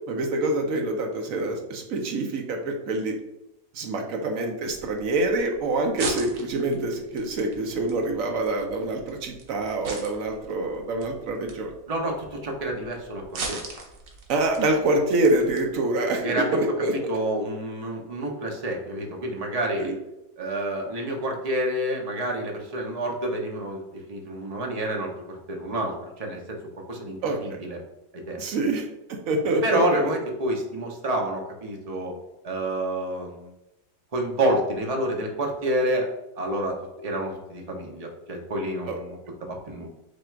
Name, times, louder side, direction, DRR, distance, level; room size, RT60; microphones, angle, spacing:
voice 1, 0.1-3.2 3.7-11.7 14.3-16.9 19.8-19.9 27.2-27.6 28.4-30.0 38.9-39.0, right 2 dB, 65° right, 3 dB, 1.1 m, -26 dB
sound 1, 4.7-15.7, right 3 dB, 85° right, 1.5 m, -40 dB
voice 2, 11.9-13.7 16.2-16.6 16.9-20.0 20.4-26.6 26.9-27.8 28.1-28.6 29.6-32.1 32.4-33.5 34.1-39.9, right 1 dB, 45° right, 1 dB, 0.5 m, -29 dB
5.0 x 2.4 x 4.4 m, 0.93 s
omnidirectional pair, 1.7 m